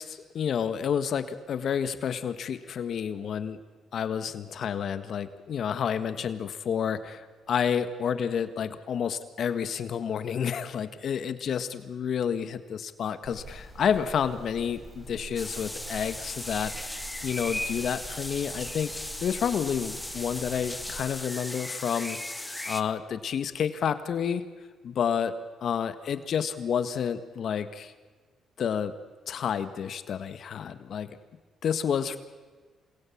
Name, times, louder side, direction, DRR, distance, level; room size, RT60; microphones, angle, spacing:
voice 1, 0.0-3.6 3.9-16.7 17.2-18.9 19.2-24.4 24.8-25.3 25.6-27.9 28.6-28.9 29.3-31.2 31.6-32.2, left 7 dB, 60° left, 11 dB, 1.6 m, -30 dB
sound 1, 13.2-21.0, right 3 dB, 15° right, 6.4 m, -45 dB
sound 2, 15.4-22.8, left 1 dB, 10° left, 1.4 m, -37 dB
27.5 x 21.0 x 8.7 m, 1.3 s
cardioid pair, 90°, 0 cm